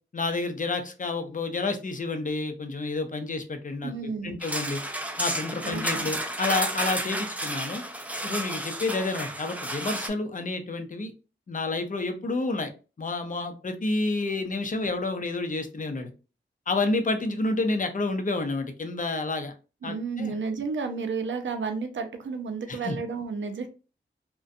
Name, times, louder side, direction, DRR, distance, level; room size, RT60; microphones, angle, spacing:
voice 1, 0.1-4.8 5.2-7.8 8.2-11.1 11.5-12.7 13.0-16.1 16.7-19.5 19.8-20.3 22.7-23.0, left 3 dB, 40° left, 7 dB, 0.5 m, -29 dB
voice 2, 3.8-4.3 5.6-6.1 19.8-23.7, right 5 dB, 70° right, 7 dB, 0.5 m, -32 dB
sound 1, 4.4-10.1, right 1 dB, 5° right, 0.4 m, -31 dB
2.5 x 2.2 x 2.5 m, 0.33 s
cardioid pair, 45°, 20 cm